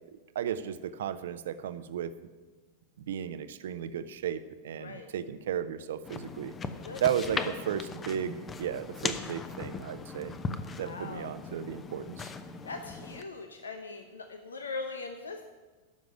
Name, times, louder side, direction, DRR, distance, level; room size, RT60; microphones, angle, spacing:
voice 1, 0.3-2.1 3.1-6.5 7.0-10.3 10.8-12.3, right 9 dB, 60° right, 12 dB, 0.7 m, -34 dB
sound 1, 6.0-13.2, left 4 dB, 20° left, 0.8 m, -38 dB
voice 2, 10.8-11.3 12.6-15.4, left 3 dB, 70° left, 6 dB, 0.9 m, -40 dB
13.0 x 6.2 x 9.3 m, 1.3 s
figure-of-eight pair, 90°, 0 cm